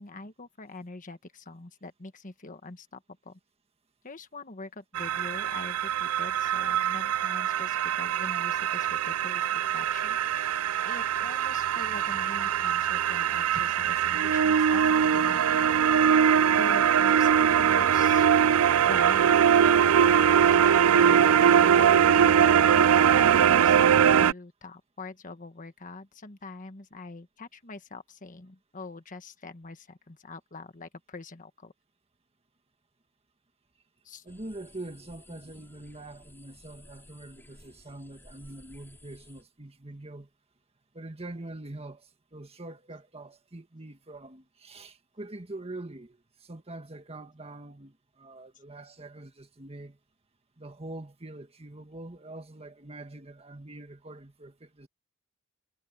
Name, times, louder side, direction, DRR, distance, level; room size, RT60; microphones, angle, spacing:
voice 1, 0.0-3.4 4.0-18.3 18.7-31.7 34.0-34.2, left 3 dB, 40° left, 1.4 m, -44 dB
sound 1, 5.0-24.3, right 8 dB, 90° right, 0.4 m, -22 dB
voice 2, 34.2-40.3 40.9-50.0 50.6-54.9, right 2 dB, 30° right, 1.7 m, -44 dB
sound 2, 34.3-39.4, left 1 dB, 10° left, 4.2 m, -55 dB
head